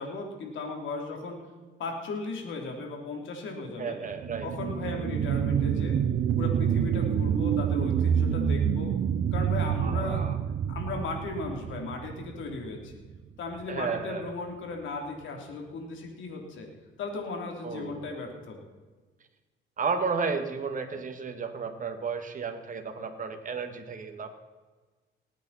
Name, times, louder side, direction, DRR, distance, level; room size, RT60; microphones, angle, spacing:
voice 1, 0.0-1.4 1.8-4.0 4.4-6.0 6.4-8.9 9.3-10.3 10.7-12.9 13.4-16.7 17.0-18.6, left 3 dB, 75° left, 2 dB, 3.1 m, -36 dB
voice 2, 3.8-4.5 9.8-10.4 13.7-14.3 17.6-18.1 19.8-24.3, right 5 dB, 40° right, 5 dB, 1.8 m, -33 dB
sound 1, 4.1-13.2 13.6-13.7, right 8 dB, 55° right, 0.8 m, -27 dB
19.5 x 9.1 x 4.2 m, 1.3 s
cardioid pair, 90°, 20 cm